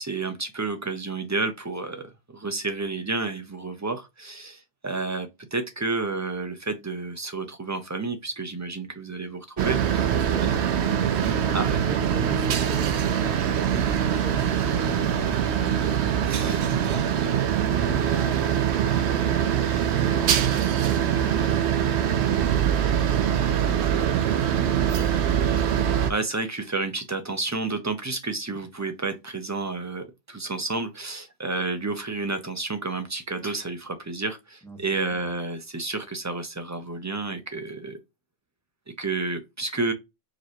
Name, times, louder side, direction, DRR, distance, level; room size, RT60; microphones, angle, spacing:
voice 1, 0.0-10.1 10.4-10.5 11.5-11.8 16.2-16.6 25.8-38.0 39.0-39.9, right 3 dB, 25° right, 0.4 m, -30 dB
sound 1, 9.6-26.1, right 9 dB, 75° right, 0.8 m, -23 dB
voice 2, 10.1-15.5 15.9-19.5 34.6-34.8 35.1-35.3, right 1 dB, ahead, 1.1 m, -39 dB
4.9 x 3.2 x 2.9 m
omnidirectional pair, 1.2 m